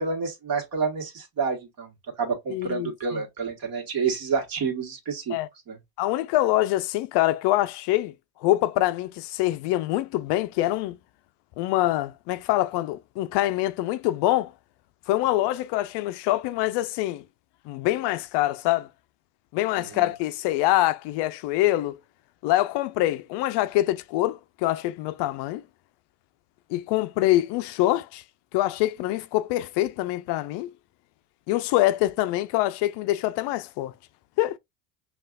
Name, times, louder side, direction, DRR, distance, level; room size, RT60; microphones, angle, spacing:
voice 1, 0.0-1.9 2.2-5.4 5.7-5.8 19.8-20.1, right 5 dB, 45° right, 1.6 m, -29 dB
voice 2, 2.5-3.2 5.3-5.5 6.0-8.1 8.4-11.0 11.6-14.5 15.1-17.2 17.7-18.9 19.5-22.0 22.4-25.6 26.7-28.2 28.5-30.7 31.5-33.9 34.4-34.6, left 16 dB, 60° left, 0.5 m, -25 dB
5.6 x 2.5 x 2.4 m
supercardioid pair, 85°, 48 cm